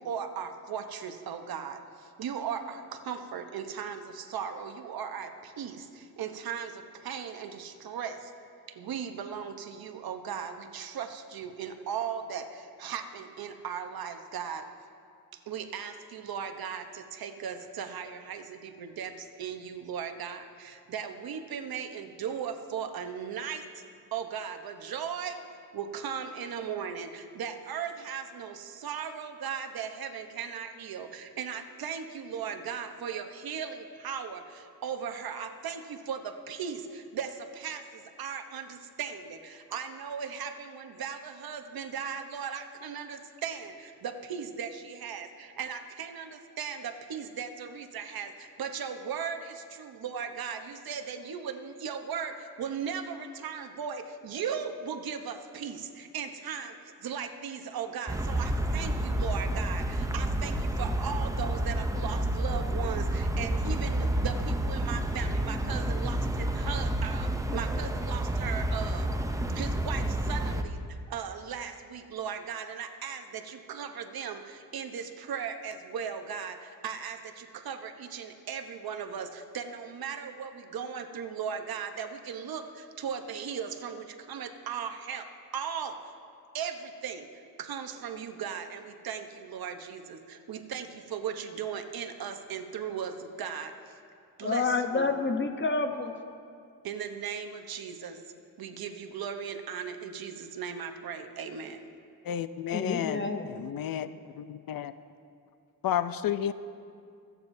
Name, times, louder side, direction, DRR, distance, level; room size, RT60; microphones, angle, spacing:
voice 1, 0.0-8.3 8.7-14.7 15.3-23.8 24.1-25.4 25.7-69.1 69.5-85.3 85.5-86.0 86.5-94.0 94.4-95.2 96.8-98.2 98.6-101.9, right 7 dB, 70° right, 6 dB, 1.0 m, -37 dB
sound 1, 58.1-70.6, right 1 dB, 10° right, 0.6 m, -29 dB
voice 2, 94.4-96.1 102.7-103.5, left 4 dB, 30° left, 6 dB, 0.9 m, -28 dB
voice 3, 102.2-104.1 104.3-104.9 105.8-106.5, left 10 dB, 65° left, 13 dB, 0.5 m, -31 dB
25.5 x 9.1 x 2.7 m, 2.4 s
cardioid pair, 105°, 38 cm